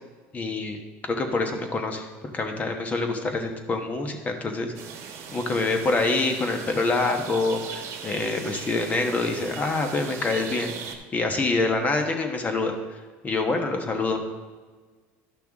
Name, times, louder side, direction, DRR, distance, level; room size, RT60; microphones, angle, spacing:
voice 1, 0.3-0.8 1.0-2.0 2.3-4.7 5.3-10.7 11.1-12.8 13.2-14.2, left 3 dB, 25° left, 5 dB, 1.2 m, -26 dB
sound 1, 4.7-10.9, right 6 dB, 50° right, 1.2 m, -39 dB
12.0 x 5.8 x 3.6 m, 1.4 s
supercardioid pair, 115°, 6 cm